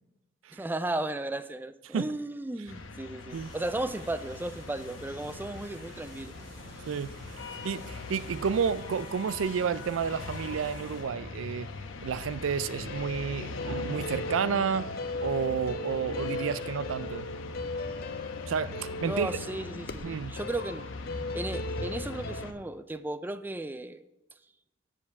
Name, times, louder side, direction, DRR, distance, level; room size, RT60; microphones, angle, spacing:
voice 1, 0.5-6.3 19.0-24.0, right 2 dB, 10° right, 0.3 m, -35 dB
sound 1, 2.7-22.5, left 3 dB, 90° left, 0.9 m, -41 dB
sound 2, 3.3-11.0, equal, 65° right, 4.0 m, -51 dB
voice 2, 7.6-11.7 12.0-14.9 15.2-17.3 18.5-19.3 20.0-20.4, right 6 dB, 90° right, 0.4 m, -31 dB
sound 3, 12.9-22.4, left 3 dB, 50° left, 0.6 m, -38 dB
7.2 x 6.8 x 7.0 m
head